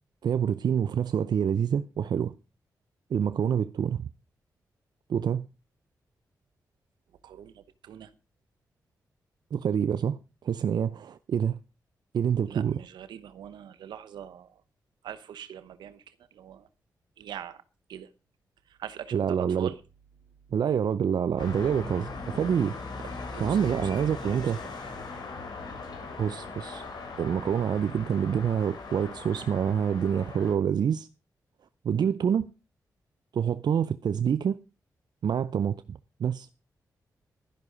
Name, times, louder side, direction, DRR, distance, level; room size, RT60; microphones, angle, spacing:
voice 1, 0.2-2.3 3.1-4.1 5.1-5.5 9.5-10.2 10.4-11.6 12.1-12.8 19.1-19.7 20.5-22.8 23.4-24.6 26.2-26.8 27.2-31.1 31.8-32.5 33.3-34.6 35.2-36.5, right 8 dB, 70° right, 0.6 m, -27 dB
voice 2, 7.2-8.1 12.5-14.6 15.0-16.7 17.2-17.6 17.9-18.1 18.7-19.8 23.0-24.6, right 9 dB, 85° right, 1.0 m, -43 dB
sound 1, 21.4-30.5, left 3 dB, 80° left, 3.6 m, -39 dB
12.5 x 11.0 x 5.2 m
supercardioid pair, 45°, 7 cm